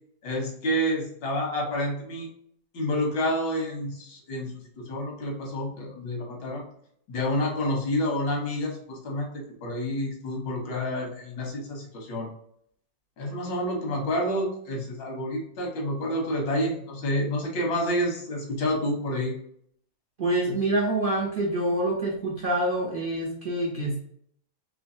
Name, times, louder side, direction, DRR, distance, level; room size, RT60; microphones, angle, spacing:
voice 1, 0.2-2.3 2.7-6.6 7.1-12.3 13.2-19.3, equal, 80° left, 0 dB, 1.8 m, -29 dB
voice 2, 20.2-24.0, right 1 dB, 65° right, -3 dB, 0.5 m, -26 dB
3.8 x 3.1 x 2.6 m, 0.67 s
omnidirectional pair, 2.0 m